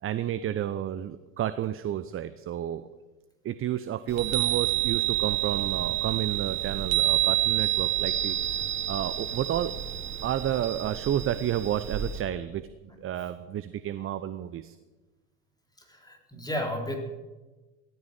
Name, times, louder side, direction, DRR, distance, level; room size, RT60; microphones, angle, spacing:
voice 1, 0.0-2.9 3.4-8.4 8.9-9.7 10.2-12.6 13.0-14.8, right 11 dB, 30° right, 13 dB, 0.8 m, -31 dB
Chime, 4.1-12.2, right 13 dB, 65° right, 2.2 m, -28 dB
voice 2, 15.8-17.0, left 1 dB, 10° left, 2 dB, 3.6 m, -33 dB
16.5 x 13.5 x 6.5 m, 1.2 s
figure-of-eight pair, 70°, 40 cm